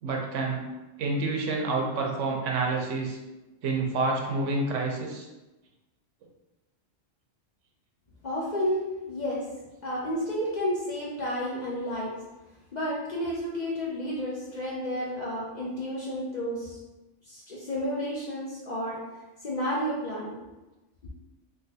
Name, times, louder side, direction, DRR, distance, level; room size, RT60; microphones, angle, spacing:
voice 1, 0.0-0.6 1.0-3.2 3.6-5.3, right 3 dB, 85° right, 0 dB, 1.0 m, -28 dB
voice 2, 8.2-9.5 9.8-12.1 12.7-16.8 17.3-19.0 19.4-20.4, equal, 55° left, -5 dB, 0.5 m, -31 dB
3.7 x 2.2 x 2.7 m, 1.1 s
omnidirectional pair, 1.3 m